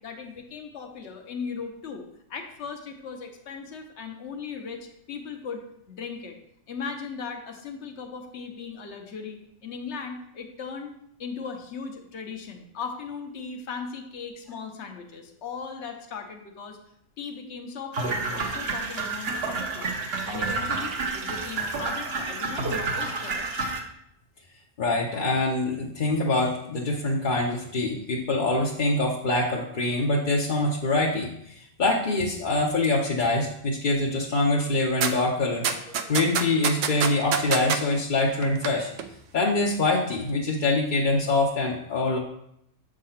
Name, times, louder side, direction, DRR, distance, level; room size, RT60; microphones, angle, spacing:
voice 1, 0.0-6.4 6.7-10.9 11.2-16.8 17.2-20.0 20.2-23.7, left 5 dB, 65° left, 4 dB, 1.2 m, -38 dB
sound 1, 17.9-23.8, right 3 dB, 55° right, 1.1 m, -29 dB
voice 2, 24.8-31.3 31.6-38.9 39.3-42.2, left 2 dB, 45° left, -3 dB, 0.9 m, -24 dB
sound 2, 35.0-35.1 35.6-37.8 38.4-38.7 39.0-39.1, right 7 dB, 80° right, 1.0 m, -25 dB
7.4 x 3.7 x 5.7 m, 0.75 s
omnidirectional pair, 1.3 m